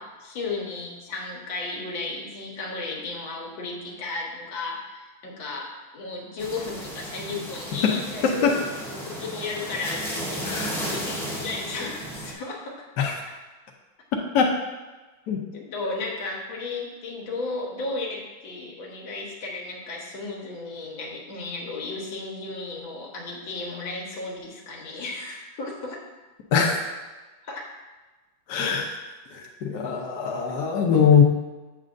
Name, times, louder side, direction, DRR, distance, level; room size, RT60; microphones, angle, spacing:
voice 1, 0.0-12.9 15.5-26.0 27.5-27.6, left 3 dB, 80° left, -1 dB, 2.0 m, -34 dB
sound 1, 6.4-12.3, equal, ahead, 0.9 m, -34 dB
voice 2, 8.2-8.5 10.4-10.8 13.0-13.1 14.3-14.5 15.3-15.4 26.5-26.8 28.5-28.9 29.3-31.2, left 6 dB, 65° left, 0 dB, 1.3 m, -21 dB
7.5 x 7.3 x 2.6 m, 1.2 s
omnidirectional pair, 2.1 m